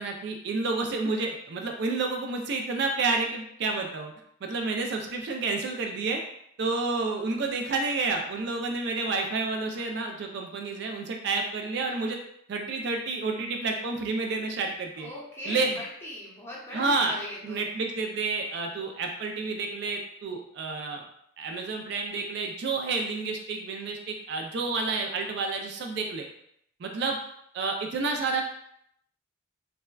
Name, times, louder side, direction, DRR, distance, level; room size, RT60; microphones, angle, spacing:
voice 1, 0.0-4.1 4.4-6.2 6.6-12.2 12.5-15.1 15.5-15.8 16.7-17.2 17.4-21.0 21.4-26.3 26.8-27.2 27.5-28.4, right 3 dB, 55° right, 2 dB, 0.3 m, -30 dB
voice 2, 15.0-17.6, left 1 dB, 10° left, -5 dB, 0.6 m, -40 dB
3.4 x 2.1 x 2.2 m, 0.72 s
head